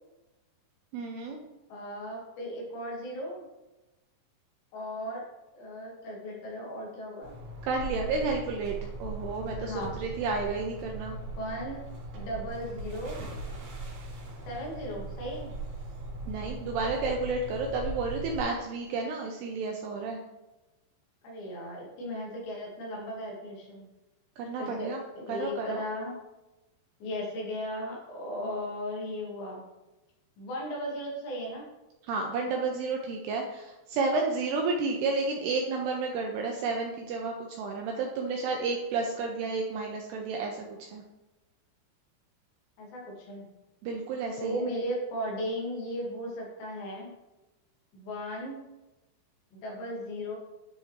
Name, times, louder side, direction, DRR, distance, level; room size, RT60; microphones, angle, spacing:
voice 1, 0.9-1.4 7.6-11.2 16.3-20.2 24.4-25.0 25.3-25.8 32.1-41.0 43.8-44.7, right 4 dB, 85° right, 1 dB, 2.4 m, -31 dB
voice 2, 1.7-3.5 4.7-5.2 5.5-7.4 9.6-10.0 11.4-11.8 12.1-13.3 14.5-15.5 21.2-23.9 24.6-24.9 25.1-26.2 27.0-29.6 30.4-31.7 42.8-43.5 44.4-47.1 47.9-48.6 49.5-50.4, equal, 70° left, -3 dB, 3.9 m, -36 dB
Diver going underwater, 7.2-18.4, right 2 dB, 60° right, 3.9 m, -39 dB
10.5 x 5.6 x 3.2 m, 1.0 s
omnidirectional pair, 5.4 m